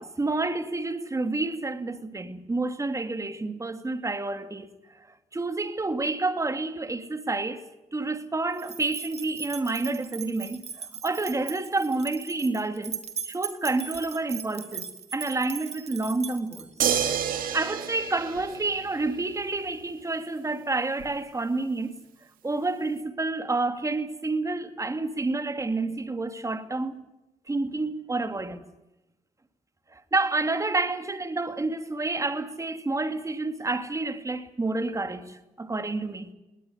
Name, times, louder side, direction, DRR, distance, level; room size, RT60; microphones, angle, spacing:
voice 1, 0.0-4.7 5.3-7.6 7.9-13.0 13.2-16.7 17.5-21.9 22.4-27.0 27.5-28.6 29.9-36.3, right 3 dB, 20° right, 2.5 m, -29 dB
sound 1, 8.6-16.9, right 6 dB, 50° right, 2.6 m, -39 dB
sound 2, 16.8-19.3 21.0-21.1, right 9 dB, 85° right, 2.6 m, -29 dB
20.0 x 19.0 x 9.5 m
cardioid pair, 85°, 14 cm